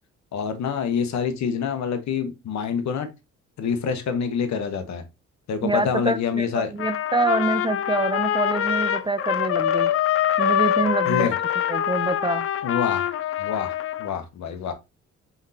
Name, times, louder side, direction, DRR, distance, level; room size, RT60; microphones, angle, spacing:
voice 1, 0.3-3.1 3.6-5.0 5.5-6.7 11.0-11.3 12.6-13.1 13.4-13.7 14.0-14.7, left 7 dB, 65° left, 1.0 m, -26 dB
voice 2, 5.6-9.9 10.4-11.3 11.7-12.5, right 2 dB, 15° right, 0.3 m, -26 dB
Trumpet, 6.8-14.1, left 10 dB, 50° left, 0.5 m, -24 dB
4.5 x 3.8 x 2.7 m
cardioid pair, 90°, 30 cm